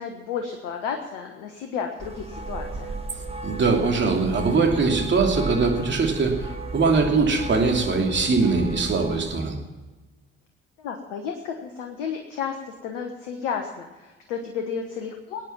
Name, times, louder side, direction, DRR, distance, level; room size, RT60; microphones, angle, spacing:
voice 1, 0.0-2.9 10.8-15.5, left 6 dB, 75° left, 4 dB, 1.2 m, -32 dB
sound 1, 2.0-9.3, right 3 dB, 20° right, 1.8 m, -34 dB
voice 2, 3.4-9.6, right 4 dB, 40° right, 1 dB, 2.9 m, -22 dB
21.0 x 9.0 x 5.9 m, 1.2 s
figure-of-eight pair, 45°, 29 cm